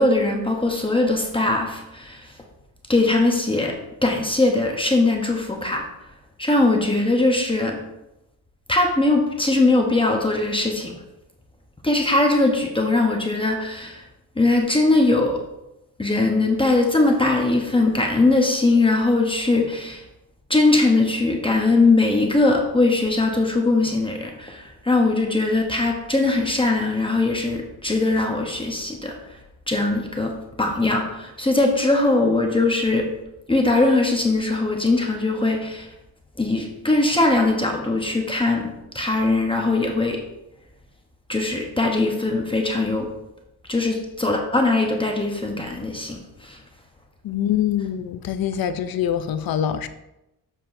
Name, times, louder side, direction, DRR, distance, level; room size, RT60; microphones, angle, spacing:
voice 1, 0.0-2.3 2.9-5.8 6.4-7.8 8.7-10.9 11.8-14.0 14.4-15.4 16.0-20.0 20.5-29.4 29.7-33.1 33.5-35.9 36.4-40.2 41.3-43.1 43.7-46.6, left 2 dB, 15° left, 0.8 m, -20 dB
voice 2, 47.2-49.9, left 10 dB, 60° left, 0.6 m, -24 dB
7.6 x 6.5 x 2.6 m
wide cardioid pair, 140°, 41 cm